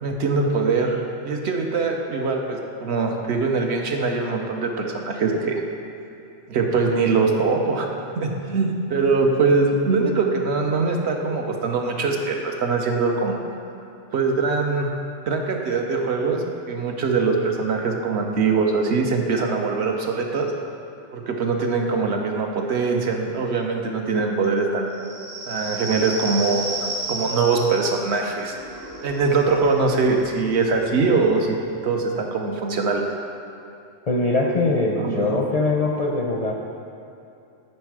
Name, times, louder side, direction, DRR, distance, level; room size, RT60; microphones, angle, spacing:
voice 1, 0.0-5.6 6.5-7.9 8.2-13.4 14.1-14.9 15.3-20.5 21.1-24.9 25.5-28.6 29.0-31.6 31.8-33.0 34.9-35.4, right 4 dB, 65° right, 2 dB, 1.0 m, -22 dB
sound 1, 24.9-32.2, right 2 dB, 85° right, 1.5 m, -34 dB
voice 2, 34.1-36.5, left 2 dB, 45° left, -2 dB, 0.5 m, -22 dB
9.6 x 4.3 x 4.8 m, 2.7 s
omnidirectional pair, 1.2 m